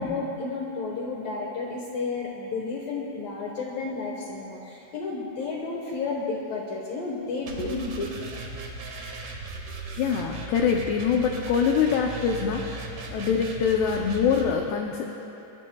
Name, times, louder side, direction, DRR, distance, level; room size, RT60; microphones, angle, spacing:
voice 1, 0.0-8.1, left 3 dB, 70° left, -2 dB, 2.1 m, -32 dB
sound 1, 7.5-14.5, right 3 dB, 70° right, 1.8 m, -37 dB
voice 2, 10.0-15.1, left 6 dB, 85° left, 1 dB, 2.3 m, -24 dB
22.0 x 21.5 x 2.3 m, 2.9 s
omnidirectional pair, 5.7 m